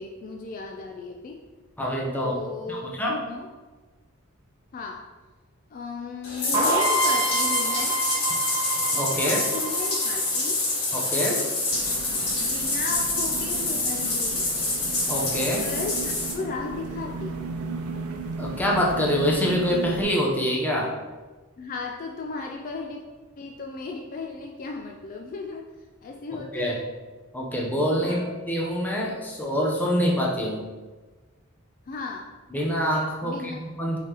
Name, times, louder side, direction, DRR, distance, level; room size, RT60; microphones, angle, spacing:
voice 1, 0.0-1.4 2.2-3.5 4.7-5.1 5.7-8.0 9.2-10.6 12.4-14.5 15.6-17.4 21.6-23.0 23.4-25.7 26.0-26.9 28.0-28.3 31.9-32.3 33.2-33.6, left 4 dB, 40° left, 1 dB, 0.3 m, -35 dB
voice 2, 1.8-2.4 2.7-3.2 8.9-9.4 10.9-11.4 15.1-15.6 18.4-20.9 26.3-26.8 27.3-28.2 28.5-30.6 32.5-34.0, equal, 10° left, -2 dB, 0.7 m, -25 dB
Bathtub (filling or washing), 6.2-16.3, left 2 dB, 80° left, 1.5 m, -26 dB
sound 1, 6.5-10.3, right 2 dB, 15° right, 1.0 m, -26 dB
sound 2, 11.7-20.0, right 3 dB, 75° right, 0.5 m, -35 dB
5.4 x 3.3 x 2.9 m, 1.3 s
head